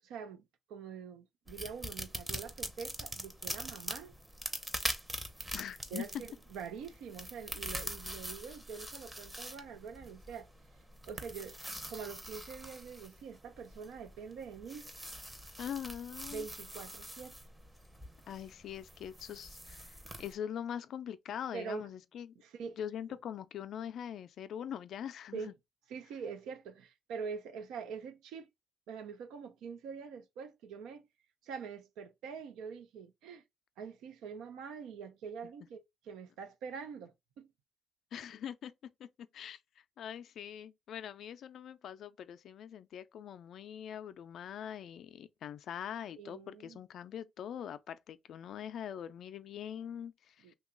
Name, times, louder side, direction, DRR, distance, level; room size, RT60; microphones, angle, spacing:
voice 1, 0.0-0.4 0.7-4.1 5.9-10.5 11.1-11.6 11.9-14.9 16.3-17.3 21.5-21.9 22.4-22.8 25.3-25.5 25.9-28.5 28.9-31.0 31.4-33.4 33.8-37.5 46.2-46.8 50.4-50.5, right 6 dB, 90° right, 0.5 m, -44 dB
sound 1, 1.5-20.3, equal, 10° right, 0.7 m, -44 dB
voice 2, 5.5-6.1 8.1-8.2 15.6-16.5 18.3-22.3 22.8-25.4 38.1-39.6 40.0-50.4, left 9 dB, 70° left, 0.3 m, -43 dB
2.9 x 2.2 x 3.7 m
cardioid pair, 90°, 0 cm